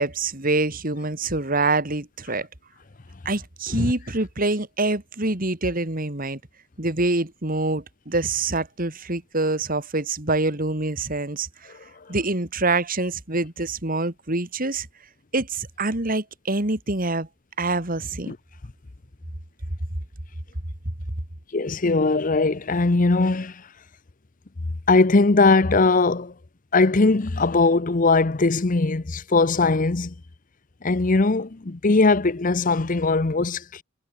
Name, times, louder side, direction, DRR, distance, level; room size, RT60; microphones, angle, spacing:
voice 1, 0.0-2.5 3.2-6.4 6.8-11.5 12.1-14.9 15.3-17.3 17.6-18.3, right 2 dB, 40° right, 2.7 m, -25 dB
voice 2, 21.5-23.6 24.9-26.3 26.7-30.1 30.8-33.8, left 3 dB, 40° left, 0.8 m, -20 dB
head